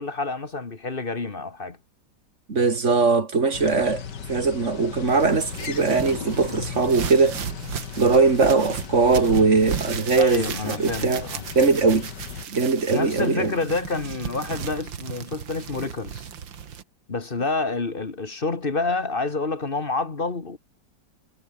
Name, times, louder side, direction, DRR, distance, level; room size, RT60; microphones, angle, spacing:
voice 1, 0.0-1.8 10.1-11.4 12.9-16.2 17.1-20.6, left 3 dB, 30° left, 1.7 m, -28 dB
voice 2, 2.5-4.0 4.3-7.4 8.0-11.2 11.5-12.1 12.5-13.6, right 4 dB, 40° right, 2.8 m, -20 dB
sound 1, 3.5-12.5, left 7 dB, 65° left, 2.3 m, -37 dB
sound 2, 5.1-16.8, right 7 dB, 90° right, 2.4 m, -35 dB
omnidirectional pair, 2.0 m